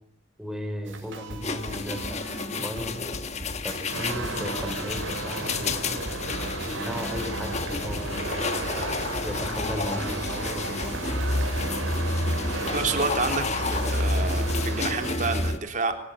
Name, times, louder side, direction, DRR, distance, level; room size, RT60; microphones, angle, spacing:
voice 1, 0.4-3.0 3.6-6.0 6.6-8.5 9.2-11.2, equal, ahead, 4 dB, 4.9 m, -36 dB
sound 1, 0.8-15.5, right 1 dB, 65° right, 7.7 m, -39 dB
sound 2, 1.4-15.6, left 2 dB, 35° left, 1.3 m, -30 dB
sound 3, 3.9-15.1, right 3 dB, 80° right, 4.2 m, -35 dB
voice 2, 12.7-16.0, right 3 dB, 40° right, 4 dB, 3.4 m, -29 dB
24.5 x 18.5 x 9.3 m, 0.81 s
head